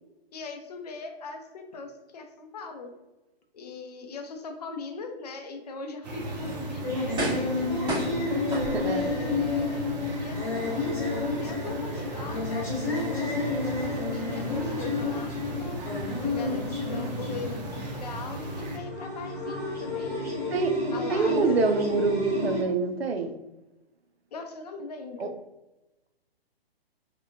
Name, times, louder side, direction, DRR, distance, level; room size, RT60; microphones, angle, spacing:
voice 1, 0.3-2.9 3.5-7.7 8.3-8.5 8.8-9.9 10.1-10.8 11.4-12.8 13.2-15.8 16.2-21.6 24.3-25.4, left 4 dB, 40° left, 5 dB, 0.5 m, -40 dB
sound 1, 6.0-18.8, right 1 dB, 45° right, 0.7 m, -37 dB
sound 2, 6.4-22.6, left 2 dB, 10° left, 1.1 m, -31 dB
sound 3, 7.1-7.6 7.9-9.1 9.6-9.7, right 1 dB, 15° right, 0.9 m, -31 dB
voice 2, 8.5-9.1 20.5-20.8 21.1-23.4 25.2-25.3, right 4 dB, 75° right, 7 dB, 0.5 m, -26 dB
3.9 x 2.2 x 2.6 m, 1.0 s
figure-of-eight pair, 125°, 31 cm